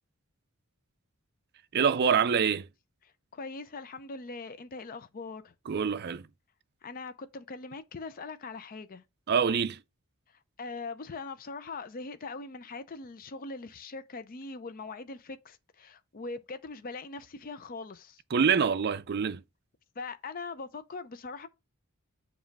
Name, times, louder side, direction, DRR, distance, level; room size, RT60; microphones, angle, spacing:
voice 1, 1.7-2.7 5.7-6.3 9.3-9.8 18.3-19.4, right 6 dB, 45° right, 0.4 m, -25 dB
voice 2, 3.3-5.5 6.8-9.0 10.6-18.2 20.0-21.5, left 3 dB, 40° left, 0.5 m, -41 dB
7.3 x 3.1 x 5.2 m
head